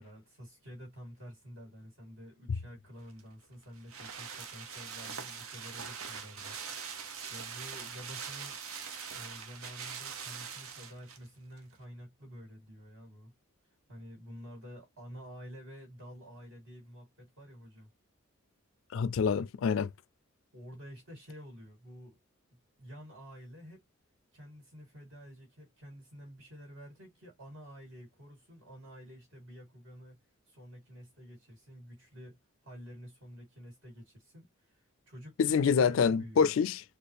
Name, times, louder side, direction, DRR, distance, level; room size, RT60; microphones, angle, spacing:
voice 1, 0.0-6.6 7.3-8.6 9.1-13.3 13.9-17.9 20.5-22.2 22.5-23.8 24.3-30.2 30.5-36.5, equal, 60° right, 2.4 m, -50 dB
sound 1, 3.1-11.3 11.6-11.7, right 6 dB, 80° right, 0.8 m, -42 dB
voice 2, 18.9-19.9 35.4-36.8, left 6 dB, 65° left, 0.3 m, -26 dB
4.3 x 2.4 x 3.2 m
head